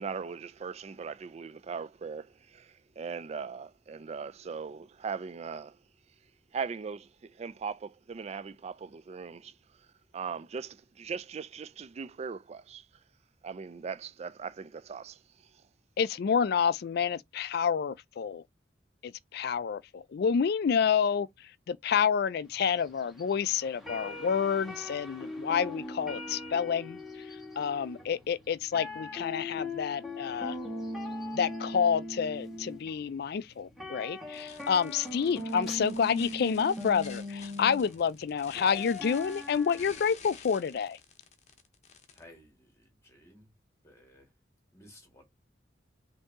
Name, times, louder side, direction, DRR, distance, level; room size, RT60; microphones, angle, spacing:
voice 1, 0.0-5.8 6.5-9.5 10.1-12.9 13.4-15.6, right 5 dB, 35° right, 0.3 m, -39 dB
voice 2, 16.0-18.4 19.0-21.3 21.7-27.0 27.6-30.6 31.3-41.0, left 7 dB, 55° left, 0.3 m, -29 dB
sound 1, 22.6-40.0, left 1 dB, ahead, 1.5 m, -40 dB
sound 2, 34.3-42.2, left 6 dB, 40° left, 0.9 m, -51 dB
voice 3, 42.1-43.5 43.8-44.3 44.7-45.3, left 1 dB, 15° left, 2.3 m, -56 dB
5.3 x 2.7 x 3.6 m
head